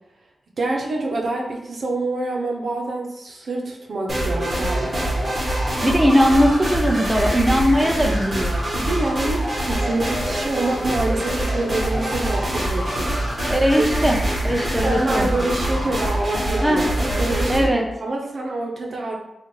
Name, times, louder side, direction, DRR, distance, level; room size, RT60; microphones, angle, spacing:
voice 1, 0.6-5.3 8.5-13.2 13.8-13.9 14.8-17.7 18.0-19.1, right 2 dB, 65° right, 0 dB, 0.7 m, -26 dB
sound 1, 4.1-17.7, right 1 dB, 30° right, 1.2 m, -24 dB
voice 2, 5.8-8.7 13.5-14.2 14.4-15.3 16.6-16.8 17.5-17.9, equal, 10° right, 1 dB, 0.4 m, -19 dB
3.1 x 2.4 x 4.3 m, 0.88 s
wide cardioid pair, 95°, 0 cm